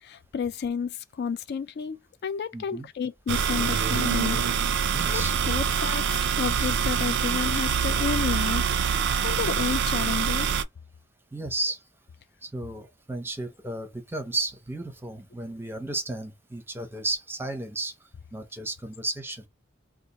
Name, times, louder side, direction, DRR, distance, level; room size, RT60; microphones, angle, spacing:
voice 1, 0.0-4.4 5.1-8.7 9.2-10.5, left 6 dB, 50° left, 0.3 m, -31 dB
voice 2, 2.5-2.9 4.9-5.3 11.3-11.8 12.4-17.9 18.3-19.5, right 2 dB, 10° right, 0.6 m, -33 dB
sound 1, 3.3-10.6, right 7 dB, 60° right, 0.4 m, -25 dB
2.8 x 2.4 x 3.9 m
head